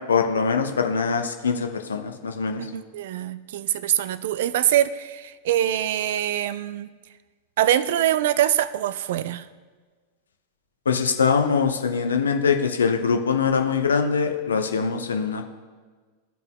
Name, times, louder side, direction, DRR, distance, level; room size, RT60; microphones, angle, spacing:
voice 1, 0.0-2.6 10.9-15.5, left 5 dB, 70° left, 5 dB, 0.6 m, -23 dB
voice 2, 2.6-6.9 7.6-9.5, right 12 dB, 55° right, 16 dB, 0.3 m, -24 dB
14.0 x 5.2 x 2.2 m, 1.5 s
figure-of-eight pair, 90°, 0 cm